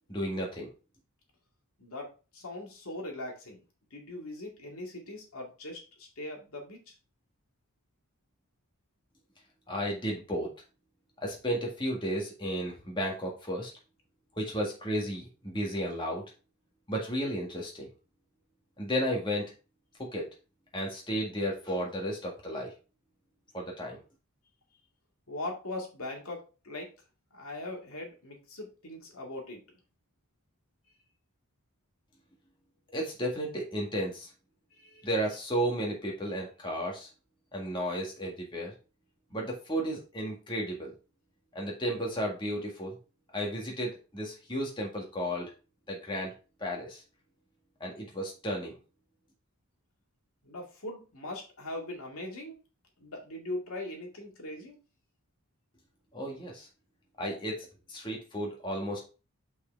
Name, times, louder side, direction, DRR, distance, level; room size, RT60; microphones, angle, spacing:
voice 1, 0.1-0.7 9.7-10.5 11.2-13.7 14.4-16.2 16.9-17.9 18.8-19.5 20.1-20.3 20.7-22.7 23.5-24.0 32.9-34.3 35.0-37.1 37.5-38.7 39.3-40.9 41.6-43.0 43.3-45.5 45.9-46.3 46.6-47.0 47.8-48.8 56.1-56.7 57.2-59.0, equal, 20° left, -1 dB, 1.8 m, -33 dB
voice 2, 1.8-3.6 3.9-6.9 25.3-26.9 27.3-29.6 34.7-35.1 50.4-52.6 53.0-54.7, left 1 dB, 75° left, 0 dB, 2.3 m, -40 dB
5.7 x 4.8 x 4.5 m, 0.33 s
head